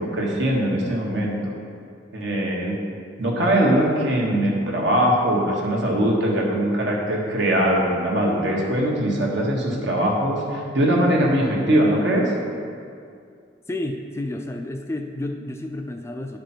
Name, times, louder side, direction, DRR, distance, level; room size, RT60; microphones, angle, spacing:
voice 1, 0.0-1.5 2.1-2.8 3.2-12.3, right 1 dB, 65° right, -2 dB, 1.6 m, -21 dB
voice 2, 13.7-16.4, left 1 dB, 15° left, 4 dB, 0.4 m, -30 dB
10.5 x 5.2 x 4.5 m, 2.3 s
head